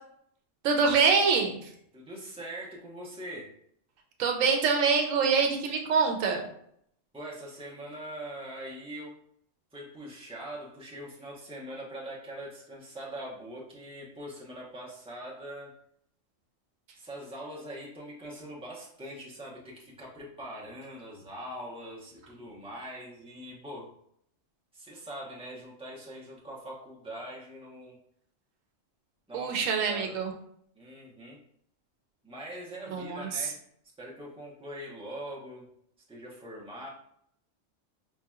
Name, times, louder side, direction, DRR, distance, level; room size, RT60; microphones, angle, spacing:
voice 1, 0.6-1.7 4.2-6.4 29.3-30.3 32.9-33.5, right 5 dB, 80° right, 3 dB, 1.0 m, -25 dB
voice 2, 1.9-3.5 7.1-9.2 9.7-15.8 16.9-23.9 24.7-28.0 29.3-29.5 29.9-30.2 30.7-31.4 32.2-33.6 34.0-35.7 36.1-36.9, right 1 dB, 5° right, -5 dB, 0.8 m, -42 dB
4.7 x 2.8 x 2.3 m, 0.69 s
omnidirectional pair, 1.3 m